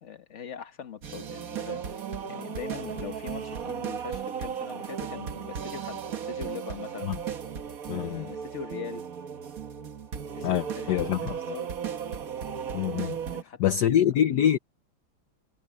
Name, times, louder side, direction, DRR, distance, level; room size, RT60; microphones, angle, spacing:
voice 1, 0.0-7.1 7.9-9.1 10.3-11.7 13.3-13.6 13.9-14.5, left 7 dB, 40° left, 1.6 m, -41 dB
sound 1, 1.0-13.4, right 7 dB, 50° right, 1.5 m, -35 dB
voice 2, 7.9-8.3 10.4-11.4 12.7-13.2 13.6-14.6, left 10 dB, 65° left, 1.3 m, -25 dB
omnidirectional pair, 2.2 m